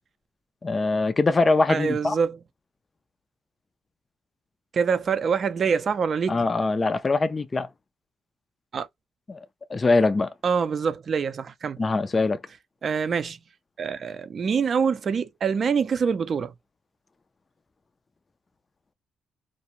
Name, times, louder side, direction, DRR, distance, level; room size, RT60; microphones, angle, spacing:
voice 1, 0.6-2.2 6.3-7.7 9.3-9.4 9.7-10.3 11.8-12.4, left 3 dB, 30° left, 0.3 m, -22 dB
voice 2, 1.7-2.4 4.7-6.4 8.7-8.9 10.4-11.8 12.8-13.4 13.8-16.5, right 6 dB, 50° right, 0.4 m, -25 dB
2.5 x 2.1 x 2.8 m
cardioid pair, 90°, 0 cm